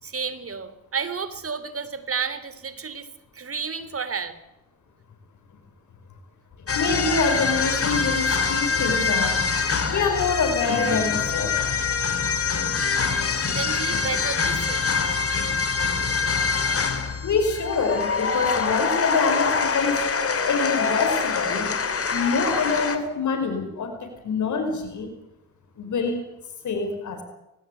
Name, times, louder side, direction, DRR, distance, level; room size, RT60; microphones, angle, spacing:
voice 1, 0.0-3.1 3.3-4.4 13.5-14.9, right 5 dB, 45° right, 13 dB, 3.5 m, -31 dB
sound 1, 6.7-23.0, left 5 dB, 45° left, 3.7 m, -24 dB
voice 2, 6.8-9.4 9.9-11.6 17.2-20.0 20.5-21.7 22.1-25.1 25.8-26.2 26.6-27.2, left 4 dB, 60° left, 7 dB, 5.3 m, -25 dB
20.0 x 18.0 x 9.3 m, 0.91 s
supercardioid pair, 55°, 33 cm